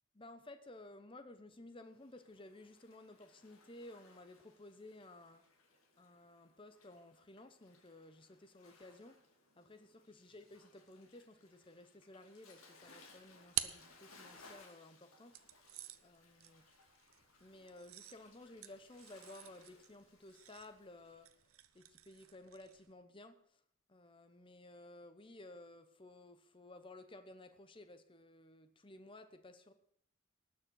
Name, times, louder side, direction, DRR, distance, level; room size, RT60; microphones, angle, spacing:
voice 1, 0.2-5.5 6.0-9.2 9.6-15.4 16.0-16.7 17.4-21.4 21.7-23.6 23.9-29.7, left 2 dB, 25° left, 0.9 m, -56 dB
Waves surf, 1.8-21.3, left 3 dB, 90° left, 2.5 m, -65 dB
sound 1, 12.8-14.6 15.3-22.9, right 14 dB, 80° right, 0.7 m, -48 dB
19.0 x 6.5 x 6.4 m
head